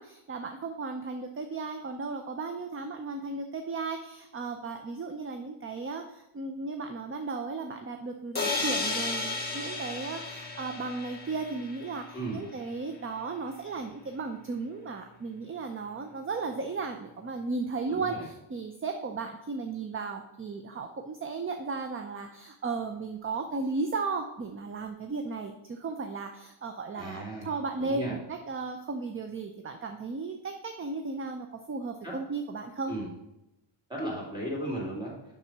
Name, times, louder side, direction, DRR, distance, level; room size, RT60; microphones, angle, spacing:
voice 1, 0.0-28.2 28.5-32.9, right 4 dB, 25° right, 6 dB, 0.5 m, -35 dB
sound 1, 8.3-12.2, left 3 dB, 20° left, 1.4 m, -33 dB
voice 2, 17.9-18.2 26.9-27.5 27.8-28.2 32.0-32.1 32.9-33.1 33.9-35.1, right 1 dB, 10° right, -4 dB, 2.6 m, -35 dB
6.8 x 6.1 x 4.6 m, 0.89 s
wide cardioid pair, 140°, 50 cm